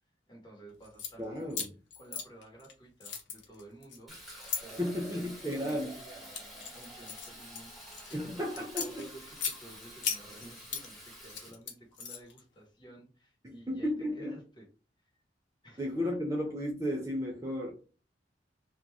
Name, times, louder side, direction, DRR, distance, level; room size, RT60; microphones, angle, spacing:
voice 1, 0.3-1.5 2.0-4.2 4.6-14.7 15.0-15.1 15.6-15.9, right 1 dB, 25° left, -2 dB, 1.1 m, -53 dB
sound 1, 0.8-1.1 1.5-2.7 3.0-4.6 5.3-5.6 6.1-8.2 8.6-9.6 10.0-10.9 11.2-12.4, left 6 dB, 80° left, 0.7 m, -37 dB
voice 2, 1.2-1.7 4.8-6.0 8.1-9.0 13.4-14.4 15.8-17.7, left 1 dB, 15° right, -1 dB, 0.4 m, -34 dB
Fill (with liquid), 4.1-11.5, equal, ahead, 0.8 m, -49 dB
2.5 x 2.2 x 3.3 m, 0.36 s
head